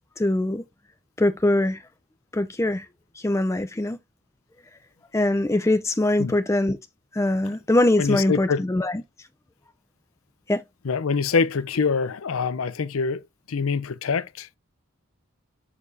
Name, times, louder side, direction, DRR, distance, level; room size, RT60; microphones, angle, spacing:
voice 1, 0.2-0.6 1.2-1.8 2.3-2.9 3.2-4.0 5.1-6.8 7.1-9.0 10.5-10.6, left 1 dB, 15° left, 0.4 m, -22 dB
voice 2, 8.0-8.6 10.8-13.2 13.5-14.5, left 5 dB, 85° left, 0.6 m, -25 dB
7.1 x 6.6 x 2.7 m
head